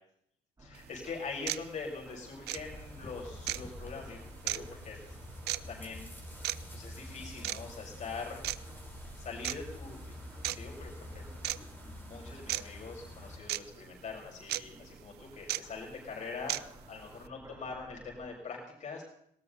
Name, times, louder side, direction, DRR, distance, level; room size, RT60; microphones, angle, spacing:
voice 1, 0.6-5.0 5.7-6.1 6.7-8.4 9.2-10.2 10.5-16.6 16.9-19.0, left 4 dB, 45° left, -1 dB, 6.7 m, -43 dB
sound 1, 0.6-18.3, right 2 dB, 20° right, 3.7 m, -55 dB
sound 2, 0.7-0.8 1.5-1.6 2.4-2.6 3.5-3.6 4.5-4.6 5.5-5.6 6.4-6.6 7.4-7.6 8.4-8.6 9.4-9.5 10.4-10.6 11.4-11.6 12.5-12.6 13.5-13.6 14.5-14.6 15.5-15.6 16.5-16.6, right 16 dB, 75° right, 0.6 m, -33 dB
sound 3, 2.5-13.4, left 1 dB, 10° left, 2.9 m, -47 dB
20.0 x 17.5 x 4.1 m, 0.71 s
cardioid pair, 110°, 17 cm